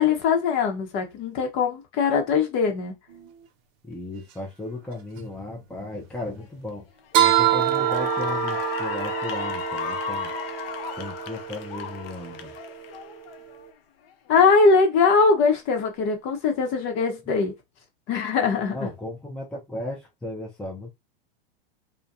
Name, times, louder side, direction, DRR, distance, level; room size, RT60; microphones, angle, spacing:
voice 1, 0.0-2.9 14.3-17.5 18.1-18.9, left 5 dB, 40° left, 0.9 m, -21 dB
sound 1, 3.1-3.3 7.1-13.7, right 12 dB, 45° right, 0.6 m, -27 dB
voice 2, 3.8-6.9 7.2-10.3 11.0-12.5 18.7-20.9, left 1 dB, 5° left, 0.5 m, -35 dB
Cheering / Applause, 6.4-6.7 7.1-13.7, left 7 dB, 70° left, 0.6 m, -34 dB
2.3 x 2.2 x 2.7 m
hypercardioid pair, 105°, 30 cm